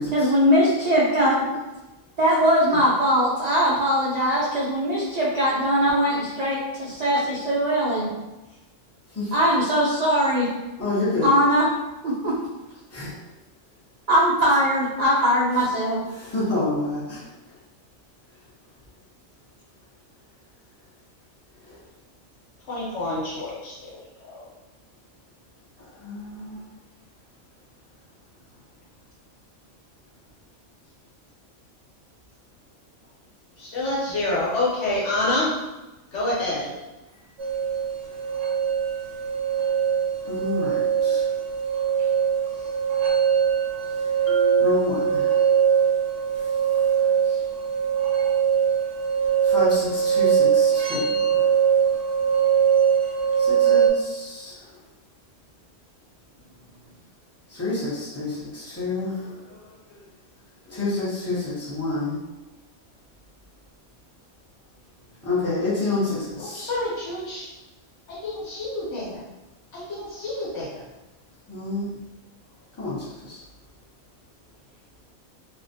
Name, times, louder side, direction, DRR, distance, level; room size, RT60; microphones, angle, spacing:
voice 1, 0.1-1.6 2.2-8.1 9.3-10.5 11.2-11.7 12.0-12.3 14.1-16.0, equal, 85° right, -8 dB, 0.3 m, -21 dB
voice 2, 10.8-11.3 12.9-13.1 16.1-17.3 21.6-21.8 26.0-26.7 40.2-41.3 43.9-44.1 44.6-45.6 46.4-46.5 47.0-47.4 49.4-51.6 53.4-54.6 57.5-60.0 60.7-62.2 65.2-66.7 71.5-71.9 72.8-73.4, left 2 dB, 15° left, -9 dB, 0.6 m, -29 dB
voice 3, 22.7-24.5 33.6-35.6 36.1-36.7 42.6-42.7 66.4-67.5 68.1-69.2 69.7-70.8, left 2 dB, 65° left, -6 dB, 1.0 m, -28 dB
sound 1, 37.4-53.9, right 7 dB, 65° right, 0.8 m, -22 dB
Marimba xylophone, 44.3-46.0, left 4 dB, 85° left, 1.1 m, -34 dB
2.4 x 2.1 x 2.6 m, 1.0 s
omnidirectional pair, 1.4 m